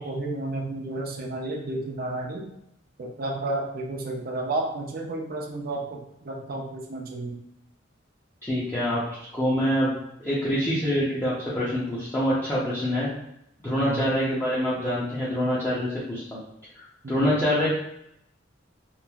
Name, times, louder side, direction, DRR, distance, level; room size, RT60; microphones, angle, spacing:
voice 1, 0.0-2.5 3.0-7.4 13.7-14.1 17.0-17.4, right 2 dB, 55° right, 0 dB, 0.5 m, -32 dB
voice 2, 8.4-9.9 10.2-13.1 13.6-16.4 16.7-17.7, equal, 15° left, -10 dB, 0.6 m, -25 dB
3.0 x 2.4 x 2.3 m, 0.78 s
head